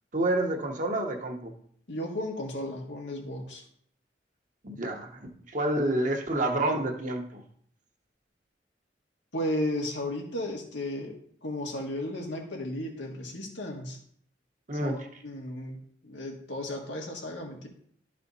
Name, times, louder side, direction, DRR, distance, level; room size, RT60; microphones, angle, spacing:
voice 1, 0.1-1.5 4.6-7.4 14.7-15.0, right 1 dB, 45° right, 3 dB, 1.1 m, -29 dB
voice 2, 1.9-3.6 9.3-11.1 11.4-14.0 14.8-17.7, left 1 dB, 90° left, 0 dB, 1.9 m, -34 dB
11.5 x 4.2 x 4.1 m, 0.63 s
head